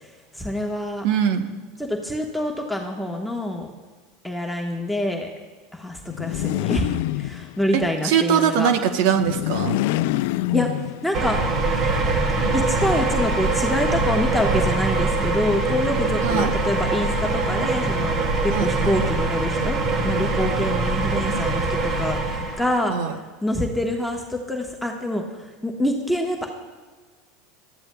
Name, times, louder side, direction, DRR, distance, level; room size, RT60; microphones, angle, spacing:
voice 1, 0.3-1.0 1.8-3.7 4.2-5.3 5.7-8.7 10.5-10.7 11.0-11.4 12.5-18.2 18.4-23.0 23.4-25.2 25.6-26.5, left 1 dB, ahead, 0 dB, 1.3 m, -26 dB
voice 2, 1.0-1.5 7.7-9.8 16.2-16.5 18.5-18.9 22.9-23.2, right 8 dB, 70° right, 8 dB, 1.0 m, -22 dB
sound 1, 6.1-7.8 9.2-11.3, left 16 dB, 70° left, 0.3 m, -26 dB
sound 2, 11.1-22.7, right 3 dB, 45° right, 2.2 m, -23 dB
21.5 x 13.5 x 2.3 m, 1.4 s
hypercardioid pair, 95°, 0 cm